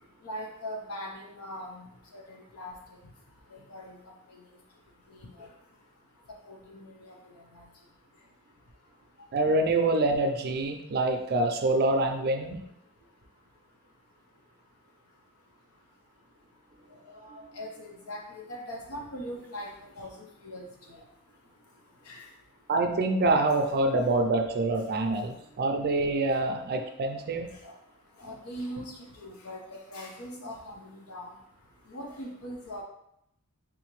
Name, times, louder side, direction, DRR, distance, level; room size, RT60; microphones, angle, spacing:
voice 1, 0.2-1.8 2.3-2.7 3.7-4.0 5.4-5.5 6.5-6.9 7.6-7.7 17.2-19.7 20.0-20.1 20.4-21.0 22.1-22.2 27.6-27.7 28.2-28.9 29.2-29.6 29.9-31.3 31.9-32.8, equal, 75° left, 0 dB, 0.8 m, -40 dB
voice 2, 9.3-12.6 22.7-27.5, right 2 dB, 45° right, 5 dB, 0.4 m, -26 dB
3.8 x 2.8 x 3.0 m, 0.78 s
head